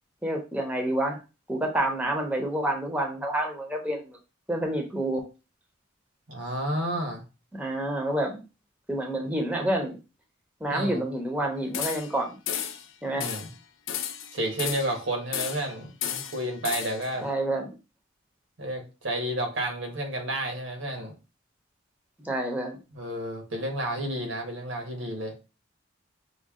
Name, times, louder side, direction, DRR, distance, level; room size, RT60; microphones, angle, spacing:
voice 1, 0.2-1.2 1.5-4.2 4.5-5.2 7.5-8.4 8.9-10.0 10.6-12.4 13.0-13.3 17.2-17.7 22.2-22.8, right 1 dB, 5° right, 2 dB, 0.7 m, -28 dB
voice 2, 6.3-7.2 10.7-11.0 13.2-13.5 14.3-17.2 18.6-21.1 22.9-25.3, right 1 dB, 85° right, 4 dB, 1.3 m, -31 dB
sound 1, 11.7-12.2 12.5-12.9 13.2-13.5 13.9-15.0 15.3-15.7 16.0-17.1, left 9 dB, 85° left, 0.5 m, -33 dB
5.3 x 2.2 x 3.6 m, 0.30 s
head